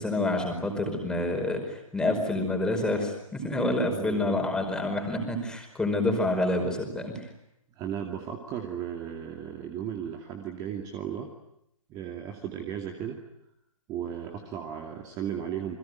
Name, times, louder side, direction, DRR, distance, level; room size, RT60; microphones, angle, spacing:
voice 1, 0.0-7.1, left 2 dB, 5° left, 4 dB, 4.9 m, -28 dB
voice 2, 3.9-4.4 7.8-11.3 11.9-13.2 13.9-15.8, right 9 dB, 20° right, 3 dB, 2.5 m, -35 dB
29.0 x 21.5 x 9.5 m, 0.80 s
figure-of-eight pair, 135°, 18 cm